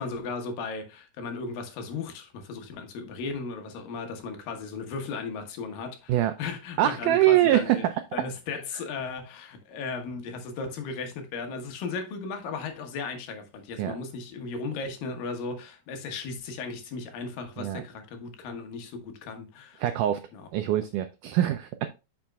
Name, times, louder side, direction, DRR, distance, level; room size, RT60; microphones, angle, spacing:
voice 1, 0.0-7.9 8.1-19.8 20.3-20.5 20.8-20.9, left 4 dB, 75° left, 2.9 m, -36 dB
voice 2, 6.8-7.9 13.8-14.0 17.6-17.8 19.8-20.2 20.5-21.9, right 13 dB, 85° right, 1.8 m, -23 dB
8.6 x 6.4 x 2.3 m
omnidirectional pair, 4.2 m